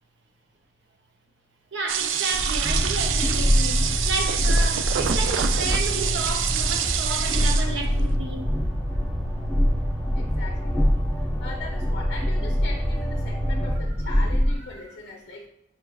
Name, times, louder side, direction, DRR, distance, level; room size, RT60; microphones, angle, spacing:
voice 1, 1.7-8.5, right 3 dB, 70° right, 0.7 m, -32 dB
sound 1, 1.9-8.0, right 8 dB, 85° right, 0.3 m, -26 dB
Train, 2.3-14.6, equal, 15° right, 0.7 m, -25 dB
sound 2, 2.8-13.8, right 1 dB, 5° left, 1.5 m, -35 dB
voice 2, 10.1-11.0 11.4-15.5, left 3 dB, 55° left, 0.5 m, -39 dB
5.7 x 3.1 x 2.2 m
head